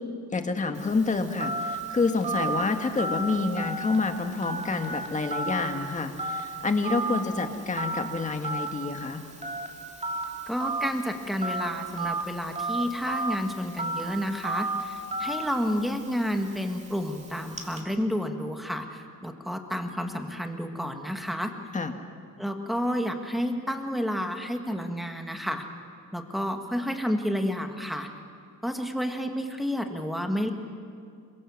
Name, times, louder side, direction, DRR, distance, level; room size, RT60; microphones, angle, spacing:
voice 1, 0.3-9.2 21.7-21.9, left 3 dB, 20° left, 6 dB, 1.7 m, -28 dB
Telephone, 0.8-17.8, right 2 dB, 20° right, 2.5 m, -34 dB
voice 2, 10.5-21.5 22.4-25.6 26.1-28.1 28.6-30.5, equal, ahead, 4 dB, 1.8 m, -30 dB
27.5 x 23.5 x 7.2 m, 2.2 s
wide cardioid pair, 170°, 33 cm